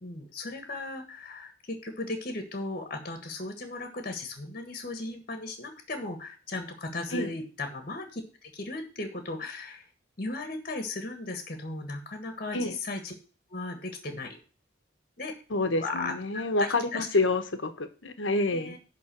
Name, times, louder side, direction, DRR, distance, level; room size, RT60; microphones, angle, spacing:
voice 1, 0.0-9.9 10.2-13.1 13.5-14.4 15.2-15.3 15.8-17.1 18.5-18.8, left 2 dB, 45° left, 6 dB, 1.5 m, -36 dB
voice 2, 15.5-18.7, left 2 dB, 85° left, 9 dB, 1.2 m, -28 dB
11.0 x 3.8 x 7.5 m, 0.37 s
head